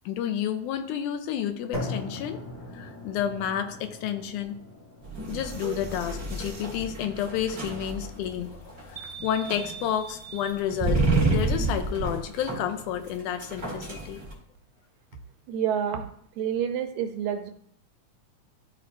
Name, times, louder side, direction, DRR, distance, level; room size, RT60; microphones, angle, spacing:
voice 1, 0.1-2.4 2.7-4.6 5.3-14.2, left 9 dB, 85° left, 7 dB, 2.2 m, -30 dB
sound 1, 1.7-9.8, left 2 dB, 35° left, 2.2 m, -41 dB
sound 2, 5.0-14.3, right 3 dB, 25° right, 2.1 m, -30 dB
voice 2, 15.5-16.1 16.4-17.5, right 8 dB, 80° right, 6 dB, 2.0 m, -28 dB
12.0 x 4.5 x 2.6 m, 0.65 s
omnidirectional pair, 3.5 m